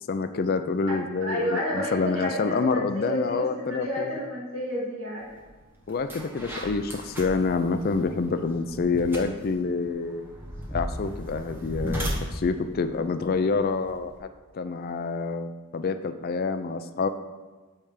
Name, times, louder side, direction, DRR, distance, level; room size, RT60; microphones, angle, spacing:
voice 1, 0.1-4.2 5.9-10.3 10.7-14.1 14.5-17.1, left 4 dB, 45° left, 9 dB, 0.4 m, -27 dB
voice 2, 1.2-5.2, equal, 75° right, -6 dB, 2.1 m, -30 dB
sound 1, 5.4-5.5 5.9-14.2, equal, 10° right, 1.1 m, -36 dB
8.7 x 3.4 x 6.5 m, 1.3 s
head